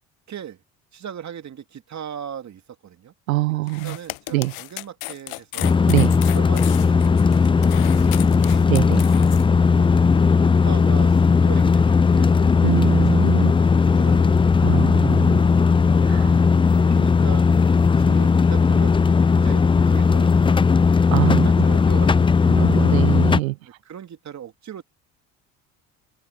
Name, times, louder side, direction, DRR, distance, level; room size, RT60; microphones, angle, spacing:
voice 1, 0.3-0.6 0.9-3.1 3.8-5.8 6.3-8.7 9.7-9.9 10.4-14.4 16.1-16.3 16.8-17.5 18.0-20.9 21.4-22.5 23.6-24.8, right 9 dB, 45° right, 2.9 m, -39 dB
voice 2, 3.3-4.0 4.3-4.5 5.9-6.1 8.7-9.0 12.6-13.5 14.6-15.5 16.1-16.4 21.1-21.5 22.5-23.6, right 20 dB, 85° right, 0.8 m, -23 dB
sound 1, 3.7-9.4, left 24 dB, 65° left, 0.8 m, -35 dB
sound 2, 5.6-23.4, left 5 dB, 15° left, 0.5 m, -17 dB
hypercardioid pair, 65°, 40 cm